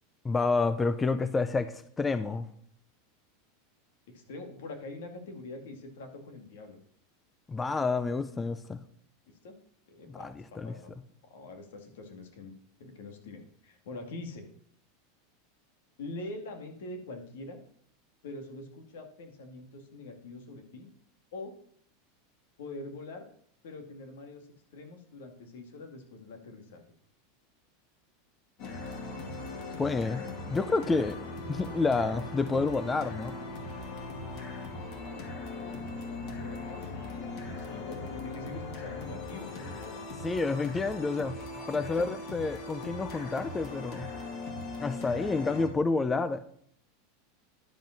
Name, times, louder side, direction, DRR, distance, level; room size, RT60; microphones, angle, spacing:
voice 1, 0.2-2.5 7.5-8.8 10.1-10.8 29.8-30.2 30.5-31.2 31.5-33.3 40.2-41.4 41.7-44.1 44.8-46.4, left 3 dB, 10° left, 12 dB, 0.4 m, -29 dB
voice 2, 4.1-6.8 9.2-9.5 9.9-10.9 11.3-12.5 12.8-14.5 16.0-17.6 18.2-20.9 21.3-21.5 22.6-23.3 23.6-26.8 35.7-35.8 36.1-40.0 42.0-42.1, left 2 dB, 80° left, 5 dB, 2.3 m, -44 dB
sound 1, 28.6-45.7, left 2 dB, 45° left, 2.4 m, -40 dB
11.0 x 5.2 x 5.9 m, 0.63 s
supercardioid pair, 160°, 0 cm